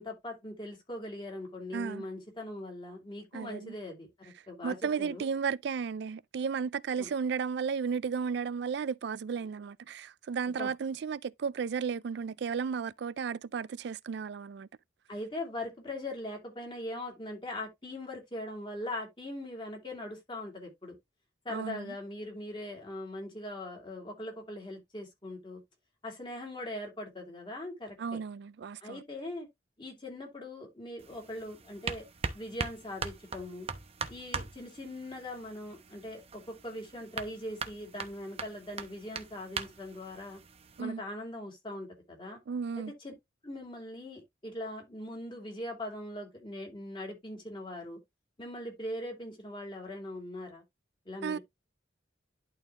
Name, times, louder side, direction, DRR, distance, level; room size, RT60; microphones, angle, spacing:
voice 1, 0.0-5.3 7.0-7.1 10.6-10.7 15.1-21.0 21.4-25.6 26.0-28.2 28.8-29.5 29.8-32.0 32.3-33.7 34.1-40.4 40.8-42.4 42.8-43.1 43.4-48.0 48.4-50.6 51.1-51.4, left 1 dB, 25° left, 2.6 m, -41 dB
voice 2, 1.7-2.0 3.3-3.7 4.6-14.7 21.5-21.9 28.0-29.0 40.8-41.0 42.5-42.9 51.2-51.4, right 6 dB, 55° right, 0.3 m, -34 dB
sound 1, 31.0-40.8, right 4 dB, 30° right, 0.8 m, -41 dB
11.5 x 4.0 x 2.9 m
head